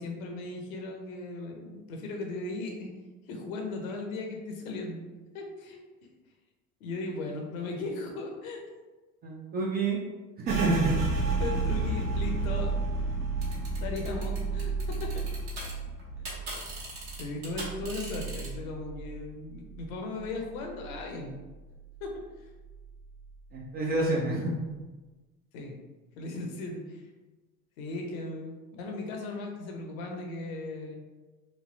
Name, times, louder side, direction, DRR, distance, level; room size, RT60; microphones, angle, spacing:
voice 1, 0.0-2.9 3.3-5.0 5.3-5.8 6.8-8.6 11.3-12.7 13.8-15.3 17.2-21.3 22.0-22.5 25.5-25.8 26.2-27.0 27.8-31.0, left 2 dB, 65° left, 2 dB, 0.7 m, -37 dB
voice 2, 9.2-10.0 10.4-10.9 23.5-24.5, right 2 dB, 25° right, -2 dB, 0.3 m, -28 dB
sound 1, 10.5-19.9 20.2-21.4 21.7-22.2 22.6-23.2, right 3 dB, 80° right, 0.8 m, -32 dB
sound 2, 13.4-15.7 16.0-18.5, right 2 dB, 60° right, 1.3 m, -40 dB
3.2 x 2.5 x 2.5 m, 1.2 s
figure-of-eight pair, 65°, 46 cm